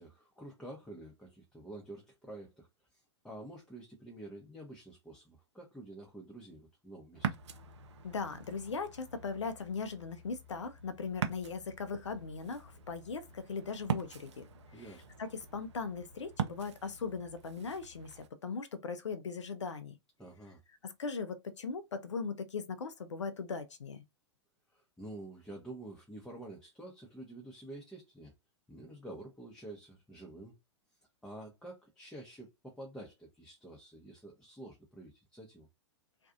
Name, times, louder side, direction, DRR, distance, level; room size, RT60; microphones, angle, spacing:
voice 1, 0.0-2.7 2.9-7.3 14.7-15.0 20.2-20.6 24.7-28.3 28.7-30.5 31.2-35.7, right 1 dB, 5° left, 0.7 m, -49 dB
Ocean, 7.1-18.3, right 7 dB, 70° right, 0.5 m, -43 dB
voice 2, 8.0-14.4 15.2-19.9 20.8-24.0, left 5 dB, 80° left, 0.5 m, -39 dB
2.5 x 2.3 x 2.5 m
figure-of-eight pair, 105°, 15 cm